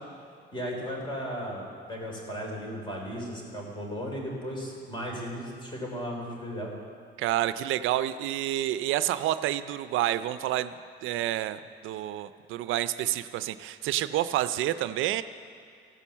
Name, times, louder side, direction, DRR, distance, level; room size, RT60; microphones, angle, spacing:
voice 1, 0.5-6.7, equal, 25° left, -1 dB, 3.5 m, -35 dB
voice 2, 7.2-10.7 11.0-15.2, right 13 dB, 85° right, 13 dB, 0.4 m, -29 dB
15.0 x 5.5 x 7.2 m, 2.4 s
cardioid pair, 90°, 20 cm